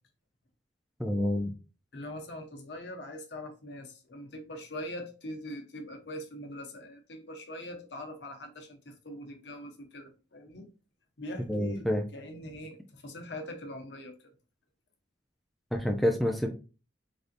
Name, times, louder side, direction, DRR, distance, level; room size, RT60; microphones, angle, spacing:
voice 1, 1.0-1.5 11.5-12.1 15.7-16.5, left 1 dB, ahead, 0.4 m, -28 dB
voice 2, 1.9-10.7 11.2-11.9 12.1-14.2, left 1 dB, 65° left, 0.8 m, -42 dB
3.4 x 2.6 x 2.5 m
head